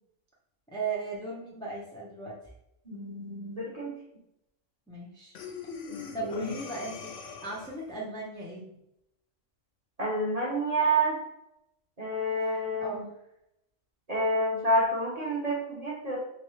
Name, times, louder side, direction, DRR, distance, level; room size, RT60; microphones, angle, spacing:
voice 1, 0.7-2.4 4.9-5.4 6.1-7.1 7.4-8.6 12.4-12.5 12.8-13.1, right 3 dB, 5° left, -5 dB, 0.4 m, -36 dB
voice 2, 2.9-3.9 5.9-6.5 10.0-11.2 12.0-13.0 14.1-16.2, right 1 dB, 35° right, -4 dB, 0.7 m, -29 dB
Breathing, 5.4-7.9, left 6 dB, 65° left, 0.8 m, -42 dB
3.2 x 3.0 x 3.1 m, 0.82 s
omnidirectional pair, 1.4 m